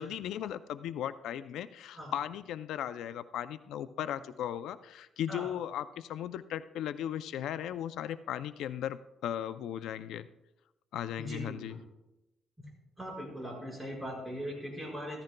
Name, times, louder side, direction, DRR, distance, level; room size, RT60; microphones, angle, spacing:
voice 1, 0.0-10.3 10.9-11.8, left 10 dB, 85° left, 12 dB, 0.4 m, -37 dB
voice 2, 11.2-11.8 13.0-15.2, equal, 10° right, -2 dB, 4.8 m, -40 dB
14.5 x 14.5 x 2.2 m, 0.94 s
cardioid pair, 125°, 0 cm